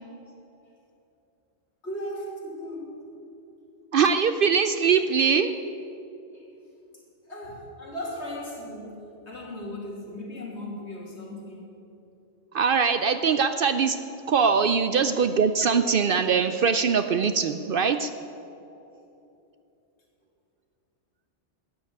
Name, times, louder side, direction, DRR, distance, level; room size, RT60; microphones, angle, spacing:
voice 1, 1.8-3.0 6.3-6.5 7.3-11.7 18.7-18.9, left 1 dB, 70° left, -4 dB, 3.2 m, -37 dB
voice 2, 3.9-5.5 12.5-14.0 14.3-18.1, right 6 dB, 60° right, 10 dB, 0.6 m, -22 dB
12.5 x 9.0 x 8.3 m, 2.8 s
omnidirectional pair, 1.2 m